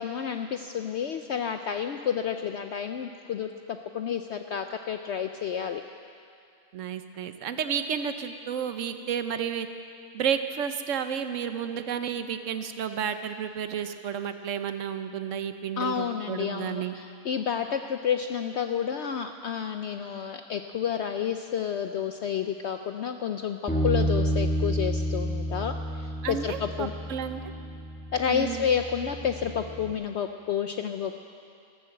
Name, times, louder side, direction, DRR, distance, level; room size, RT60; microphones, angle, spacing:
voice 1, 0.0-5.8 15.8-23.6 23.8-26.9 28.1-31.2, left 8 dB, 65° left, 7 dB, 0.7 m, -30 dB
voice 2, 6.7-9.7 10.1-17.0 26.2-27.4 28.3-28.7, right 8 dB, 65° right, 9 dB, 1.1 m, -31 dB
Bass guitar, 23.7-29.9, right 1 dB, 5° left, 1.8 m, -30 dB
14.5 x 13.0 x 7.7 m, 2.5 s
omnidirectional pair, 1.5 m